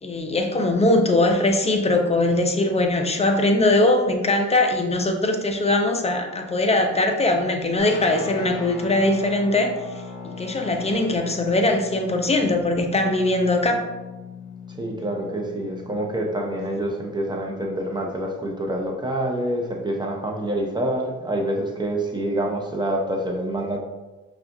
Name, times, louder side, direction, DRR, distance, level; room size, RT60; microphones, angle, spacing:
voice 1, 0.0-13.9, left 2 dB, 20° left, 4 dB, 0.5 m, -21 dB
Guitar, 7.8-16.9, left 4 dB, 50° left, 1.3 m, -38 dB
voice 2, 14.7-23.8, right 1 dB, 15° right, 1 dB, 0.8 m, -27 dB
5.5 x 2.4 x 2.6 m, 1.1 s
cardioid pair, 90°, 30 cm